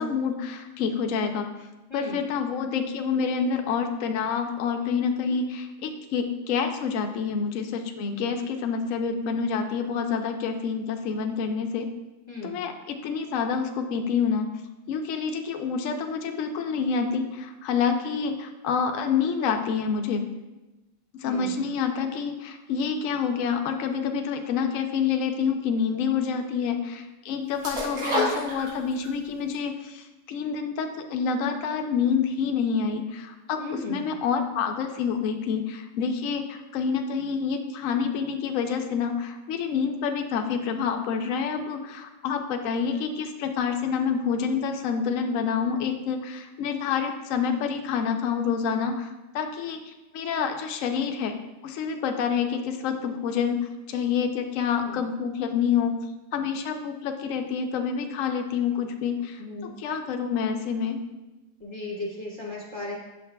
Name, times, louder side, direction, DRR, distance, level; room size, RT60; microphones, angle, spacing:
voice 1, 0.0-1.5 1.9-11.9 12.4-14.5 14.9-20.3 21.1-33.6 33.9-49.1 49.3-51.3 51.6-56.0 56.3-61.0, left 6 dB, 80° left, 5 dB, 0.7 m, -27 dB
voice 2, 1.9-2.2 12.3-12.6 21.2-21.6 33.6-34.0 54.8-55.0 59.4-59.8 61.6-63.0, left 1 dB, 20° left, -4 dB, 0.9 m, -36 dB
sound 1, 27.6-29.2 29.5-29.6, left 1 dB, 75° right, 3.3 m, -27 dB
7.8 x 6.4 x 2.2 m, 1.1 s
omnidirectional pair, 2.0 m